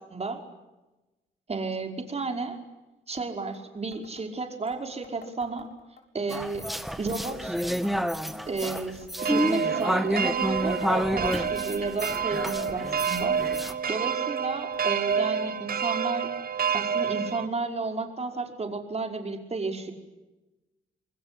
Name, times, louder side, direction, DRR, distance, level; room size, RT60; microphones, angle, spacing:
voice 1, 0.1-0.4 1.5-2.6 3.1-5.7 6.1-6.7 7.0-7.6 8.5-16.3 16.7-19.9, right 3 dB, 30° right, 4 dB, 5.3 m, -32 dB
sound 1, 3.2-3.3 3.5-3.6 3.9-4.3 4.7-6.0 6.3-6.7 7.1-8.5 8.8-9.1 9.5-10.9 11.2-11.6 11.9-13.3 13.6-14.0 14.4-14.8 15.1-15.2 15.5-15.6 16.4-16.5 17.2-17.3, left 5 dB, 55° left, 7.5 m, -52 dB
sound 2, 6.3-13.7, equal, ahead, 2.1 m, -29 dB
sound 3, 9.2-17.5, right 7 dB, 50° right, 1.7 m, -29 dB
27.0 x 21.5 x 10.0 m, 1.1 s
cardioid pair, 90°, 20 cm